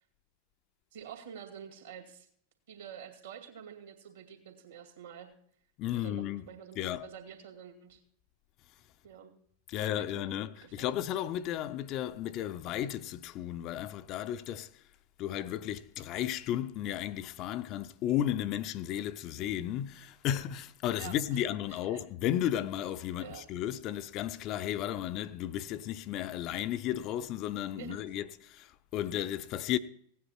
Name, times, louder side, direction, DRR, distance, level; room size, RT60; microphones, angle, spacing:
voice 1, 0.9-2.3 2.7-5.3 5.9-8.0 9.0-9.3 9.7-11.0 21.0-21.4 21.7-22.0 23.2-23.4 27.7-28.0, right 8 dB, 60° right, 2.4 m, -48 dB
voice 2, 5.8-6.5 6.8-7.1 9.7-14.8 15.2-29.8, left 11 dB, 40° left, 0.5 m, -34 dB
17.0 x 9.3 x 4.4 m
figure-of-eight pair, 90°, 0 cm